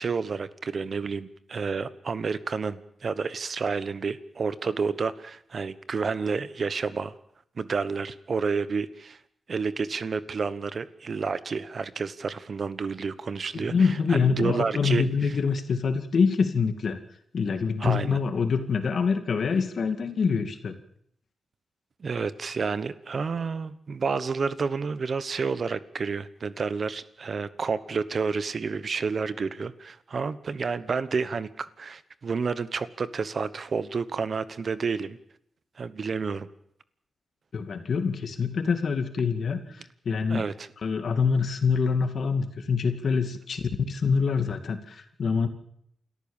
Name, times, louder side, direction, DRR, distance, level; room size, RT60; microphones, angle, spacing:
voice 1, 0.0-7.1 7.6-9.2 9.5-15.4 17.8-18.2 22.0-35.2 35.8-36.5 40.3-40.7, right 5 dB, 55° right, 14 dB, 1.1 m, -30 dB
voice 2, 13.5-17.0 17.3-20.7 37.5-39.8 40.1-40.4 40.8-45.5, left 5 dB, 65° left, 8 dB, 2.3 m, -25 dB
29.0 x 14.0 x 7.3 m, 0.70 s
cardioid pair, 90°, 0 cm